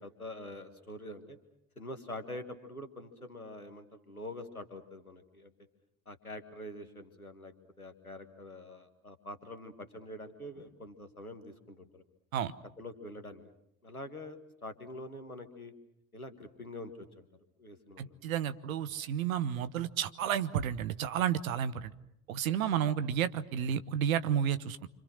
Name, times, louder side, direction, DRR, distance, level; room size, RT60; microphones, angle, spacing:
voice 1, 0.0-1.4 1.8-5.5 6.0-12.0 12.8-13.5 13.8-15.7 16.1-17.3 17.6-18.2, left 1 dB, 90° left, 8 dB, 1.7 m, -45 dB
voice 2, 18.0-21.9 22.3-24.9, right 9 dB, 75° right, 13 dB, 1.1 m, -31 dB
28.0 x 25.5 x 6.4 m, 0.77 s
figure-of-eight pair, 50°, 42 cm